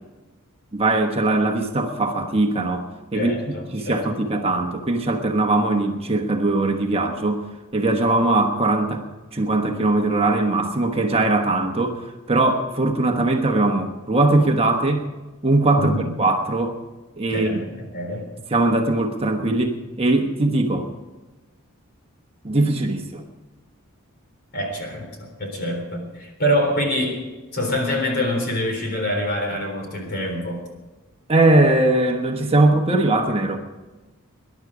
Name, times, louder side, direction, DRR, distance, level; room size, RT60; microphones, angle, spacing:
voice 1, 0.7-3.3 3.7-7.4 7.7-9.0 9.3-12.0 12.3-15.1 15.4-15.9 16.2-16.8 17.2-17.6 18.5-20.9 22.4-23.2 31.3-33.6, right 2 dB, 25° right, 3 dB, 1.2 m, -20 dB
voice 2, 3.1-4.1 15.7-16.1 17.3-18.3 24.5-27.2 27.5-30.6, equal, 45° left, 3 dB, 3.8 m, -25 dB
21.0 x 11.0 x 5.0 m, 1.2 s
head